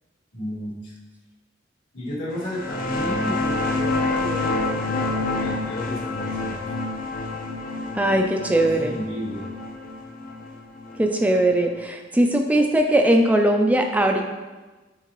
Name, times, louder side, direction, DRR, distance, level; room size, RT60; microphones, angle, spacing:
voice 1, 0.3-1.0 1.9-6.6 8.6-9.5, equal, 70° left, -7 dB, 2.0 m, -33 dB
sound 1, 2.4-11.7, left 2 dB, 50° left, 0.6 m, -27 dB
voice 2, 7.9-9.0 11.0-14.2, right 1 dB, 10° right, 3 dB, 0.3 m, -20 dB
8.3 x 3.8 x 3.0 m, 1.2 s
head